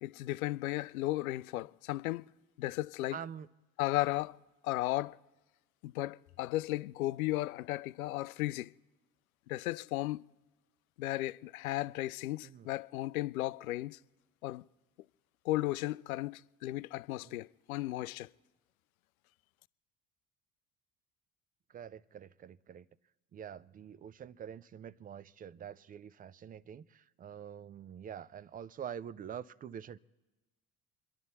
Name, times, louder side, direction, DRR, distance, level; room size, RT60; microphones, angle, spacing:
voice 1, 0.0-2.3 2.6-3.2 3.8-4.4 4.6-5.2 5.8-8.7 9.5-10.2 11.0-14.0 14.4-14.6 15.4-18.3, left 17 dB, 65° left, 0.5 m, -35 dB
voice 2, 3.1-3.5 12.4-12.7 17.2-17.4 21.7-22.9 23.3-30.0, right 8 dB, 20° right, 0.4 m, -46 dB
28.0 x 11.5 x 4.1 m
figure-of-eight pair, 55°, 45 cm